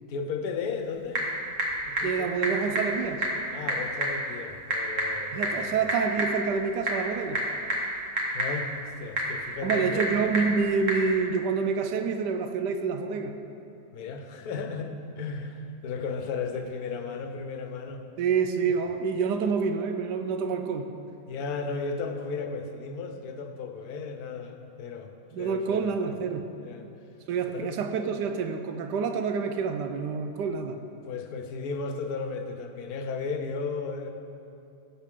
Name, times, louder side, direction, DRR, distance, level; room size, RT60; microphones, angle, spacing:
voice 1, 0.1-1.3 1.8-2.3 3.5-5.7 8.3-10.1 13.9-18.0 21.3-26.2 26.6-26.9 27.5-27.7 31.0-34.1, left 4 dB, 65° left, 6 dB, 1.3 m, -35 dB
Typing / Telephone, 0.6-11.1, right 1 dB, 50° right, 1.9 m, -31 dB
voice 2, 2.0-3.3 5.3-7.4 9.6-13.3 18.2-20.9 25.3-26.5 27.3-30.8, right 5 dB, 90° right, 7 dB, 1.2 m, -27 dB
17.0 x 7.6 x 3.7 m, 2.7 s
omnidirectional pair, 1.8 m